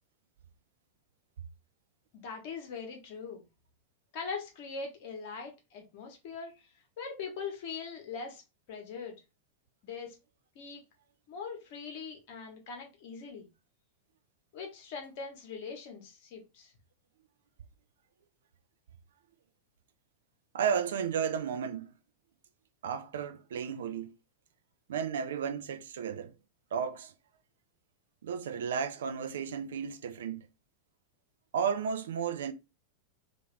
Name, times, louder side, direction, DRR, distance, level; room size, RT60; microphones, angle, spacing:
voice 1, 2.1-3.4 4.1-6.7 7.0-8.4 8.7-9.2 9.8-10.2 10.5-10.8 11.3-13.5 14.5-16.7, left 5 dB, 50° left, 1.0 m, -41 dB
voice 2, 20.5-21.9 22.8-24.1 24.9-26.3 26.7-27.1 28.2-30.5 31.5-32.5, right 7 dB, 60° right, 0.4 m, -33 dB
2.8 x 2.5 x 3.2 m
figure-of-eight pair, 90°, 0 cm